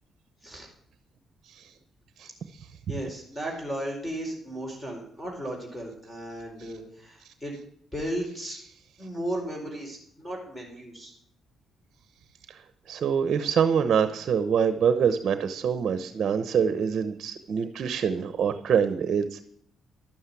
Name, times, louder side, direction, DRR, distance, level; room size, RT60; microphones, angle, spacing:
voice 1, 2.2-2.7 12.5-12.6 12.9-19.4, right 7 dB, 60° right, 11 dB, 0.9 m, -25 dB
voice 2, 2.9-7.6 7.9-8.6 9.0-11.1, right 1 dB, 10° left, 0 dB, 4.3 m, -35 dB
12.5 x 7.4 x 8.3 m, 0.65 s
cardioid pair, 90°, 0 cm